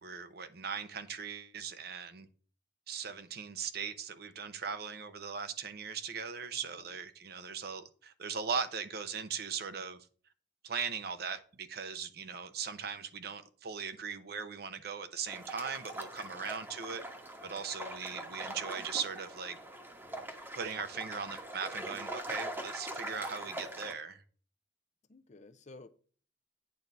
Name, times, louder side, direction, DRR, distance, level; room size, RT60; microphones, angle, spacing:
voice 1, 0.0-2.3 2.9-10.1 10.6-17.0 17.4-19.6 20.5-24.2, right 6 dB, 60° right, 0.8 m, -39 dB
voice 2, 6.6-6.9 25.1-25.9, left 2 dB, 40° left, 0.6 m, -53 dB
sound 1, 15.3-23.9, right 1 dB, 15° right, 1.2 m, -42 dB
8.8 x 4.0 x 5.9 m
head